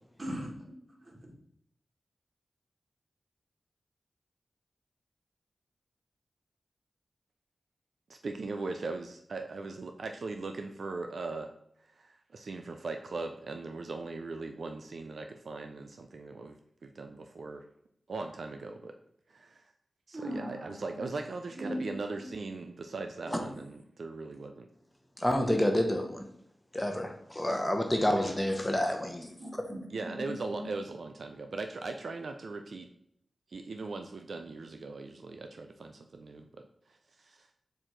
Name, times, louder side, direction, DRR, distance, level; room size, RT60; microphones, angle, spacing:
voice 1, 0.2-0.5 1.0-1.3 20.1-21.1 21.6-21.9 22.2-22.3 29.4-30.7, equal, 45° right, -1 dB, 1.5 m, -40 dB
voice 2, 8.1-11.5 11.8-16.6 16.8-17.6 18.1-18.9 19.3-19.7 20.1-24.7 29.9-32.9 33.5-37.5, right 3 dB, 75° right, 5 dB, 0.3 m, -39 dB
voice 3, 25.2-26.3 26.7-29.3, left 1 dB, 15° left, 4 dB, 0.8 m, -29 dB
4.5 x 2.5 x 4.4 m, 0.70 s
cardioid pair, 45°, 0 cm